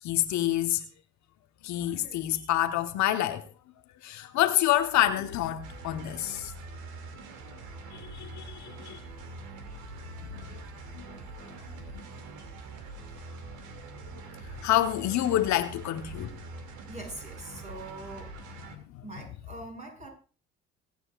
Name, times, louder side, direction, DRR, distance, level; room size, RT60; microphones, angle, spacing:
voice 1, 0.0-0.8 1.6-3.4 4.0-6.5 7.9-9.0 10.2-10.6 10.9-11.7 14.5-16.3 18.7-19.0, left 13 dB, 60° left, 1.2 m, -28 dB
sound 1, 5.6-18.8, right 3 dB, 70° right, 2.6 m, -44 dB
voice 2, 16.9-18.3 19.0-20.1, right 2 dB, 20° right, 7.1 m, -42 dB
25.0 x 8.9 x 2.5 m
hypercardioid pair, 65°, 32 cm